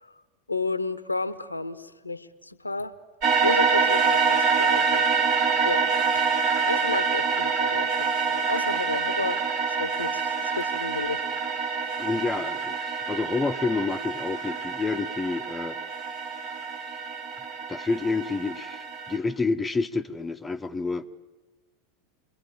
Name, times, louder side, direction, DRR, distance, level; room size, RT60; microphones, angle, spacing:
voice 1, 0.5-2.9 3.4-5.0 5.6-5.9 6.6-9.5 9.8-11.2, left 3 dB, 85° left, 16 dB, 1.0 m, -31 dB
sound 1, 3.2-19.2, right 5 dB, 50° right, 2.9 m, -26 dB
voice 2, 12.0-15.8 17.7-21.1, left 4 dB, 10° left, 8 dB, 1.0 m, -29 dB
28.5 x 22.5 x 8.8 m, 1.3 s
figure-of-eight pair, 85°, 0 cm